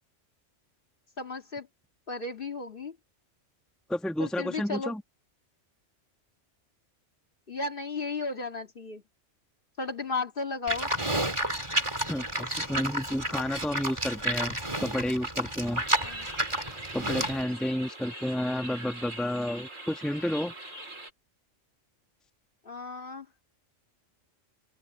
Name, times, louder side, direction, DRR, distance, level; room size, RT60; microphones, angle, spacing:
voice 1, 1.2-1.7 2.1-3.0 4.2-4.9 7.5-9.0 9.8-10.9 16.0-16.3 22.6-23.3, left 3 dB, 45° left, 2.2 m, -34 dB
voice 2, 3.9-5.0 12.1-15.8 16.9-20.5, left 1 dB, ahead, 1.2 m, -31 dB
Livestock farm animals working animals, 10.7-17.4, right 1 dB, 25° right, 3.7 m, -31 dB
sound 1, 15.8-21.1, right 1 dB, 90° right, 4.7 m, -42 dB
open air
omnidirectional pair, 1.3 m